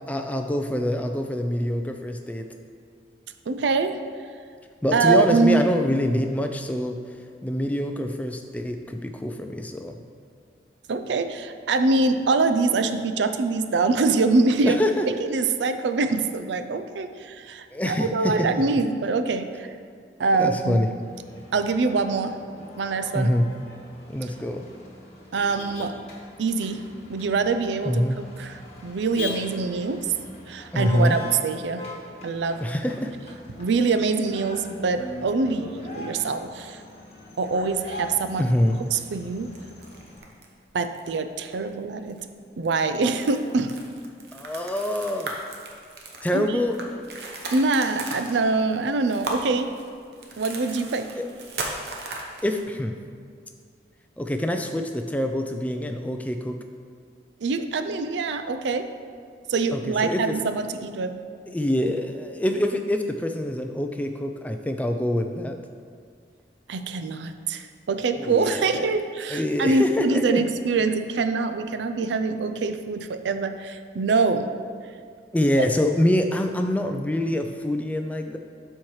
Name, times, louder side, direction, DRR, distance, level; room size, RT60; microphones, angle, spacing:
voice 1, 0.1-2.4 4.8-7.0 7.4-10.0 14.6-15.0 17.7-18.6 20.4-20.9 23.1-23.5 24.1-24.6 27.8-28.2 30.7-31.2 32.6-33.1 38.4-38.8 44.3-45.3 46.2-46.8 51.2-51.3 52.4-52.9 54.2-56.6 59.7-60.4 61.5-65.6 68.2-68.9 69.3-70.4 75.3-78.4, left 1 dB, 10° left, 5 dB, 0.3 m, -25 dB
voice 2, 3.5-4.0 4.9-5.7 10.9-14.8 15.1-19.7 20.2-21.0 21.5-22.4 22.8-23.3 24.2-24.3 25.3-25.9 26.4-28.0 28.4-30.1 30.5-31.8 32.2-32.6 33.6-36.8 37.4-38.5 38.9-39.5 40.7-42.2 42.6-43.7 46.3-46.6 47.5-49.7 50.4-51.1 57.4-58.9 59.5-61.2 66.7-74.5 75.6-75.7, right 3 dB, 80° right, 9 dB, 0.4 m, -24 dB
Motor vehicle (road), 21.0-40.2, left 2 dB, 35° left, 1.2 m, -42 dB
sound 1, 34.9-36.3 37.4-38.2 38.5-38.6 39.0-40.5 40.9-41.1 41.4-41.7 42.1-42.2 42.6-52.6, right 2 dB, 65° right, 0.9 m, -37 dB
12.0 x 4.4 x 3.1 m, 2.1 s
head